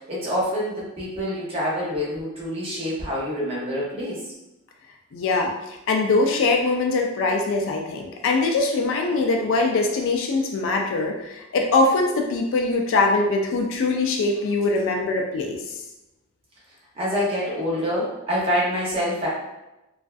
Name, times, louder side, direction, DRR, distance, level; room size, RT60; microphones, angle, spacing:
voice 1, 0.1-4.2 16.9-19.3, equal, 25° right, -6 dB, 0.7 m, -26 dB
voice 2, 5.1-5.5 5.9-15.6, left 3 dB, 60° left, 2 dB, 0.4 m, -22 dB
2.4 x 2.3 x 2.3 m, 0.96 s
head